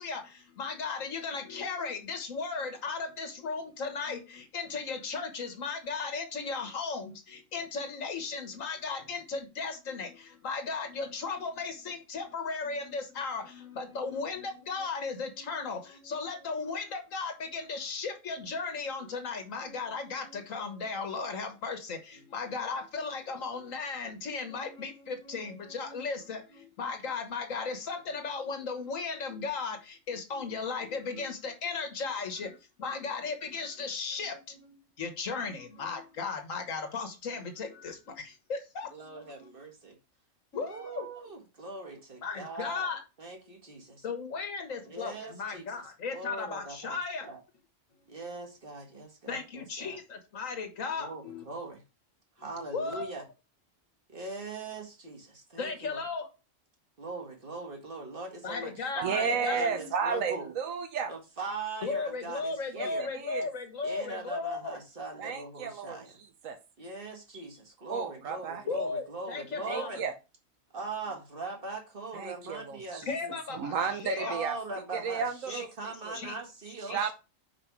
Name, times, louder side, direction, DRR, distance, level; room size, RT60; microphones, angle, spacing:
voice 1, 0.0-39.5 40.5-41.1 42.2-43.0 44.0-47.3 48.0-48.1 49.3-51.4 52.7-53.1 55.6-56.3 58.4-59.9 61.8-64.8 68.7-69.9 73.0-74.4 75.5-75.7 76.1-76.4 76.9-77.0, left 4 dB, 80° left, 1.7 m, -36 dB
voice 2, 38.9-40.0 40.6-42.9 43.2-44.1 44.9-45.7 46.1-47.0 47.3-47.4 48.1-50.0 51.0-51.8 52.4-53.2 54.1-56.0 57.0-60.5 61.1-63.1 63.8-66.2 66.8-70.0 70.7-73.3 74.2-77.0, right 3 dB, 45° right, 1.9 m, -41 dB
voice 3, 59.0-61.1 62.7-63.5 65.2-66.0 66.4-66.6 67.9-68.6 69.6-70.1 72.1-73.1 73.5-74.6 74.9-75.7 76.0-76.2 76.8-77.1, right 6 dB, 85° right, 1.3 m, -33 dB
5.3 x 5.1 x 4.6 m
omnidirectional pair, 1.4 m